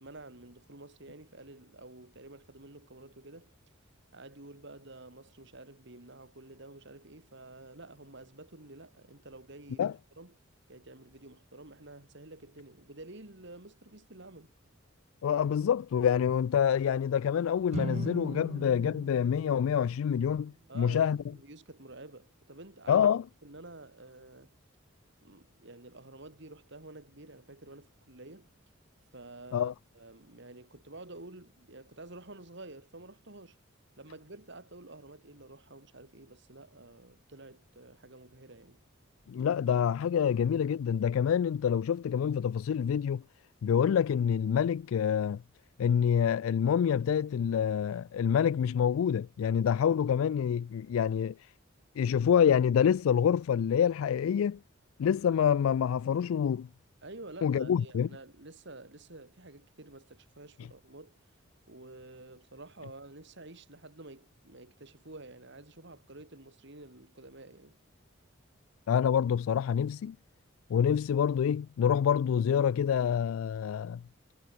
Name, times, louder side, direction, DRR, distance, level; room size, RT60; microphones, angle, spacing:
voice 1, 0.0-3.5 4.1-9.9 10.2-10.3 10.7-14.5 20.7-23.1 23.4-24.5 25.2-28.5 29.1-33.6 34.0-38.8 57.0-61.2 61.7-67.8, right 2 dB, 60° right, 3.1 m, -50 dB
voice 2, 15.2-21.2 22.9-23.2 29.5-29.7 39.3-43.2 43.6-45.4 45.8-51.3 52.0-54.6 55.0-56.7 57.4-58.1 68.9-70.2 70.7-74.0, left 8 dB, 85° left, 0.3 m, -27 dB
sound 1, 17.7-21.0, right 3 dB, 30° right, 0.4 m, -41 dB
head